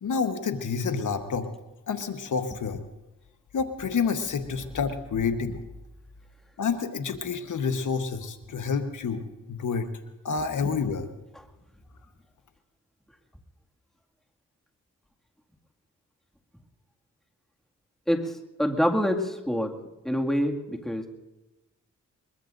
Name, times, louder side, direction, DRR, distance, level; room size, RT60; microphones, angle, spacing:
voice 1, 0.0-1.5 1.9-2.8 3.5-5.6 6.6-9.9 10.2-11.1, left 5 dB, 70° left, 7 dB, 1.2 m, -28 dB
voice 2, 18.6-19.7 20.1-21.1, equal, ahead, 1 dB, 2.1 m, -26 dB
22.0 x 22.0 x 2.6 m, 1.0 s
cardioid pair, 55°, 32 cm